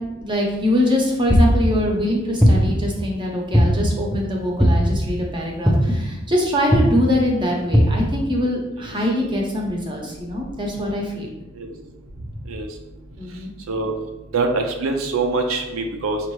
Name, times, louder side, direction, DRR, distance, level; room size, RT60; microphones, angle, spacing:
voice 1, 0.2-11.3 13.2-13.5, left 1 dB, 25° right, -1 dB, 0.8 m, -23 dB
sound 1, 1.3-1.7 2.4-2.9 3.5-4.0 4.6-5.0 5.7-6.1 6.7-7.0 7.7-8.1, equal, ahead, 0.4 m, -16 dB
voice 2, 14.3-16.2, right 3 dB, 85° right, 3 dB, 0.6 m, -23 dB
5.4 x 2.5 x 3.1 m, 0.97 s
head